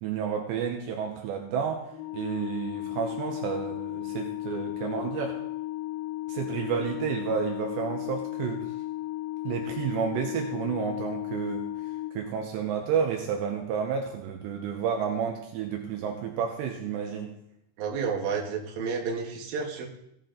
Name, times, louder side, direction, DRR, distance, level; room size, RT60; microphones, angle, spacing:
voice 1, 0.0-1.9 2.1-5.4 6.3-8.6 9.4-11.7 12.1-17.3, right 7 dB, 80° right, 2 dB, 3.1 m, -31 dB
Organ, 1.9-12.8, left 16 dB, 85° left, 2.4 m, -35 dB
voice 2, 17.8-19.9, right 5 dB, 65° right, 0 dB, 3.1 m, -31 dB
16.5 x 7.3 x 3.8 m, 0.78 s
omnidirectional pair, 5.2 m